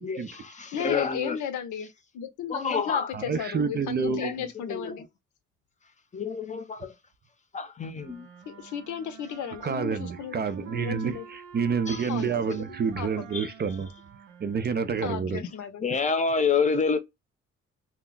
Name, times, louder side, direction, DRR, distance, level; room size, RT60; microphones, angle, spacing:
voice 1, 0.0-1.4 2.5-3.1 4.2-4.3 4.7-4.9 6.1-6.9 7.5-8.3 11.9-12.1 13.3-13.5 15.8-17.0, left 5 dB, 25° left, 0.7 m, -28 dB
voice 2, 0.7-5.1 8.5-11.3 12.1-12.6 13.0-13.1 15.0-15.9, left 8 dB, 75° left, 0.7 m, -35 dB
voice 3, 3.1-4.4 9.6-13.9 14.4-15.4, right 6 dB, 35° right, 0.4 m, -28 dB
sound 1, 7.9-15.3, right 8 dB, 80° right, 0.7 m, -48 dB
2.2 x 2.1 x 3.7 m
cardioid pair, 90°, 30 cm